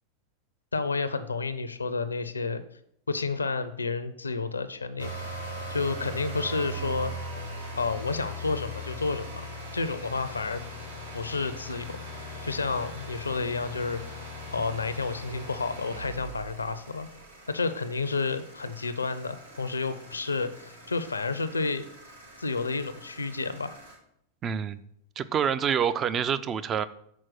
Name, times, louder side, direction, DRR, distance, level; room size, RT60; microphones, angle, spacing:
voice 1, 0.7-2.6 3.1-5.4 5.7-7.1 7.8-9.5 9.7-10.6 11.1-12.0 12.4-14.0 14.5-17.1 17.5-21.8 22.4-23.7, left 4 dB, 75° left, 13 dB, 0.5 m, -30 dB
sound 1, 5.0-24.0, equal, 75° right, 1.5 m, -40 dB
voice 2, 24.4-24.8 25.2-26.9, right 8 dB, 25° right, 14 dB, 0.4 m, -27 dB
6.3 x 4.5 x 5.9 m, 0.74 s
figure-of-eight pair, 90°, 0 cm